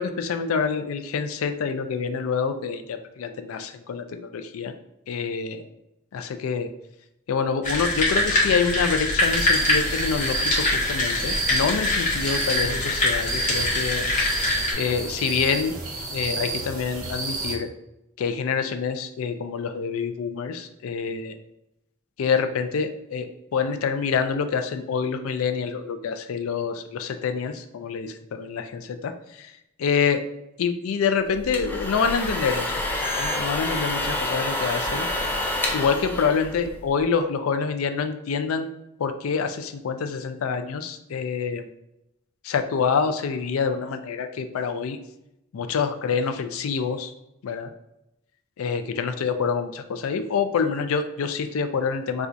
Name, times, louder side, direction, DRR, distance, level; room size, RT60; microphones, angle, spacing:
voice 1, 0.0-4.7 5.1-5.6 6.1-6.7 7.3-14.0 14.7-15.7 16.1-17.7 18.2-21.4 22.2-23.3 23.5-29.5 29.8-30.2 30.6-35.1 35.7-38.7 39.0-41.7 42.4-45.0 45.5-47.1 47.4-47.7 48.6-52.3, left 6 dB, 80° left, 9 dB, 0.4 m, -26 dB
sound 1, 7.6-14.7, left 2 dB, 35° left, 0.9 m, -24 dB
sound 2, 9.2-17.6, right 2 dB, 75° right, 0.8 m, -30 dB
sound 3, 31.3-37.0, left 1 dB, 10° left, 0.4 m, -28 dB
4.2 x 2.4 x 2.5 m, 0.86 s
head